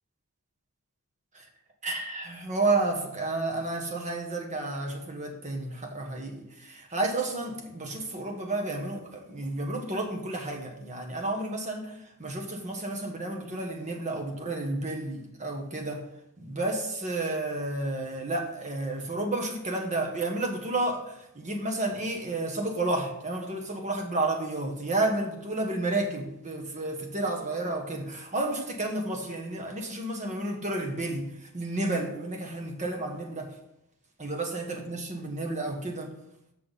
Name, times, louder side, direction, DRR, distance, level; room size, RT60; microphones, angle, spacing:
voice 1, 1.8-16.0 16.4-33.5 34.2-36.1, right 2 dB, 35° right, 2 dB, 1.4 m, -31 dB
6.7 x 6.1 x 5.8 m, 0.82 s
head